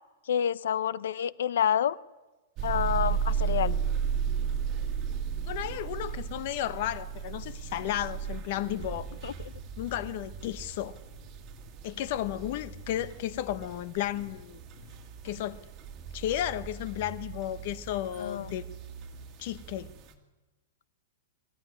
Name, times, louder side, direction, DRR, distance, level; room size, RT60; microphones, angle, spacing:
voice 1, 0.3-2.0 2.6-3.8 9.2-9.3 18.2-18.5, left 9 dB, 70° left, 0.7 m, -28 dB
sound 1, 2.6-20.1, right 7 dB, 20° right, 1.8 m, -35 dB
voice 2, 5.4-9.1 9.8-11.0 11.8-14.6 15.2-15.6 16.1-18.6 19.4-19.9, left 12 dB, 40° left, 0.9 m, -33 dB
23.5 x 14.0 x 9.8 m
supercardioid pair, 180°, 0 cm